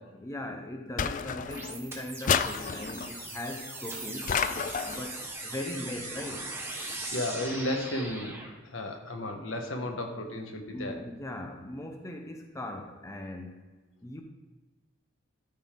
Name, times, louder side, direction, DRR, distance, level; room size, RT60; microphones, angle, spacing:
voice 1, 0.2-4.4 4.8-6.5 9.9-10.1 10.7-13.6 14.0-14.2, left 1 dB, 15° left, 3 dB, 0.7 m, -39 dB
sound 1, 1.0-1.8 2.3-3.1 4.3-5.1, left 7 dB, 40° left, 0.4 m, -30 dB
sound 2, 1.5-8.5, right 2 dB, 10° right, 1.3 m, -40 dB
Wind instrument woodwind instrument, 5.3-8.2, right 5 dB, 85° right, 1.1 m, -51 dB
voice 2, 7.1-8.4 8.6-11.0, left 1 dB, 75° left, 4 dB, 1.3 m, -33 dB
13.5 x 5.4 x 3.7 m, 1.3 s
head